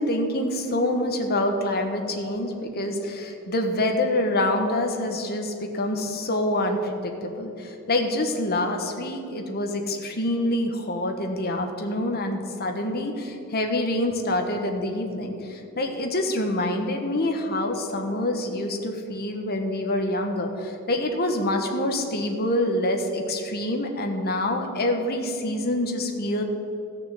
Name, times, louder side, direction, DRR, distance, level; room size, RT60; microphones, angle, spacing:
voice 1, 0.0-26.4, left 1 dB, 45° left, 4 dB, 1.3 m, -26 dB
14.0 x 6.7 x 7.6 m, 2.8 s
head